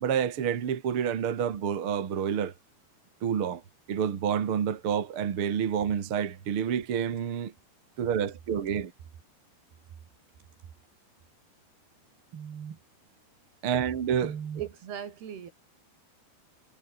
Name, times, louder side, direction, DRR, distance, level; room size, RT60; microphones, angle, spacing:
voice 1, 0.0-2.5 3.2-3.6 3.9-7.5 8.0-8.9 12.3-12.8 13.6-14.7, right 8 dB, 50° right, 1.7 m, -29 dB
voice 2, 14.6-15.5, right 8 dB, 65° right, 5.0 m, -40 dB
omnidirectional pair, 5.1 m